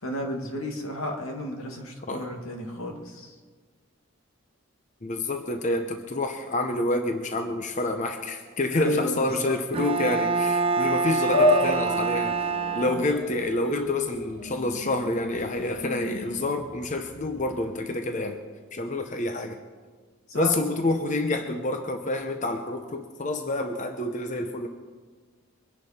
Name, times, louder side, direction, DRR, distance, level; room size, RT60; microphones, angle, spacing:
voice 1, 0.0-3.4 8.8-9.6 20.3-20.5, equal, 85° left, 2 dB, 2.2 m, -32 dB
voice 2, 5.0-12.5 12.7-18.4 18.7-19.6 20.3-24.7, left 2 dB, 35° left, 6 dB, 0.8 m, -28 dB
Bowed string instrument, 9.7-13.5, right 4 dB, 25° right, 0.7 m, -26 dB
sound 1, 11.3-17.8, left 2 dB, 55° left, 1.4 m, -29 dB
23.5 x 10.0 x 4.3 m, 1.5 s
head